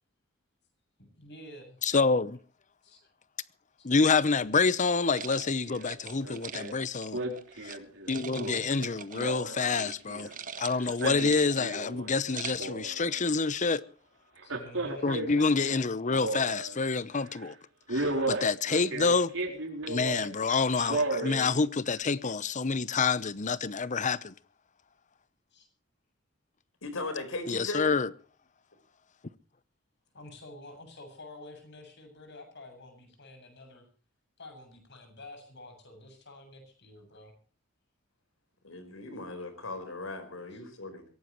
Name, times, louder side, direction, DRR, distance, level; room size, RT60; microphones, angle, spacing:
voice 1, 1.0-1.8 2.8-3.0 3.8-3.9 8.3-8.8 14.4-15.1 25.5-25.7 30.1-33.9 34.4-37.3 40.5-40.6, left 1 dB, 60° left, 7.5 m, -49 dB
voice 2, 1.8-2.4 3.8-7.2 7.6-7.8 8.1-10.3 10.6-13.8 15.0-17.5 17.9-19.3 19.9-24.3 27.5-28.1, left 4 dB, 35° left, 0.8 m, -27 dB
sound 1, 5.1-7.8 8.1-9.3 9.6-9.9 10.2-11.8 12.1-12.8, right 7 dB, 40° right, 1.3 m, -43 dB
Male speech man speaking, 5.7-5.9 6.2-6.7 7.1-10.3 10.8-12.1 12.4-13.2 14.4-16.8 17.2-17.4 17.9-20.3 20.7-21.5 22.0-22.1, right 2 dB, 70° right, 4.3 m, -34 dB
voice 3, 26.8-27.9 38.6-41.1, left 2 dB, 90° left, 4.4 m, -38 dB
23.0 x 17.5 x 3.1 m
head